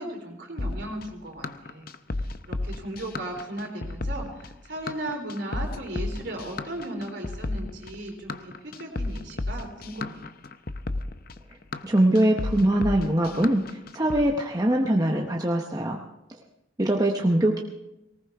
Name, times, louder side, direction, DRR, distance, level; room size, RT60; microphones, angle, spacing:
voice 1, 0.0-1.9 2.4-10.3, right 1 dB, 60° right, 1 dB, 3.6 m, -36 dB
sound 1, 0.6-14.2, left 2 dB, 45° left, 0.6 m, -33 dB
voice 2, 11.8-16.0 16.8-17.6, right 1 dB, 20° right, 1 dB, 0.8 m, -22 dB
19.0 x 19.0 x 3.5 m, 0.92 s
head